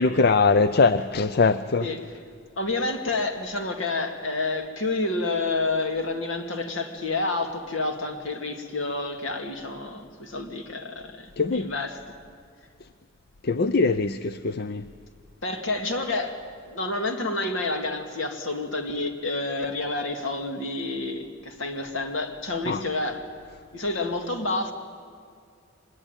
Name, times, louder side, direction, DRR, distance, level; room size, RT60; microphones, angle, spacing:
voice 1, 0.0-1.9 11.4-11.7 13.4-14.9 22.7-22.8, left 4 dB, 50° left, 0.6 m, -22 dB
voice 2, 2.6-12.0 15.4-23.3 23.7-24.7, left 2 dB, 70° left, 2.4 m, -29 dB
24.5 x 21.0 x 9.1 m
head